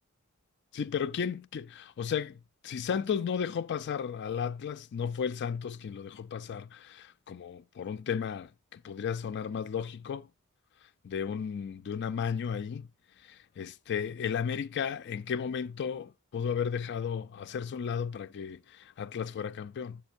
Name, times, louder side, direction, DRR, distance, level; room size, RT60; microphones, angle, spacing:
voice 1, 0.7-2.4 2.6-10.3 11.0-12.9 13.2-20.0, left 7 dB, 50° left, 0.4 m, -34 dB
11.5 x 7.0 x 2.6 m
head